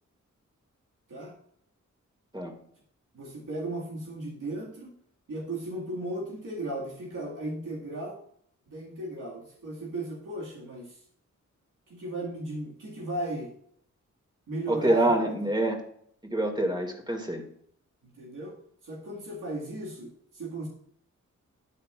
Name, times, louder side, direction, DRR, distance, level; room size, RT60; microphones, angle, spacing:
voice 1, 3.1-4.9 5.3-8.2 8.7-11.0 11.9-13.5 14.5-15.2 18.2-18.6 18.8-20.7, right 1 dB, 80° right, -4 dB, 2.2 m, -36 dB
voice 2, 14.7-15.8 16.3-17.4, right 1 dB, 15° right, 2 dB, 2.4 m, -26 dB
12.5 x 8.7 x 2.5 m, 0.66 s
cardioid pair, 70°, 31 cm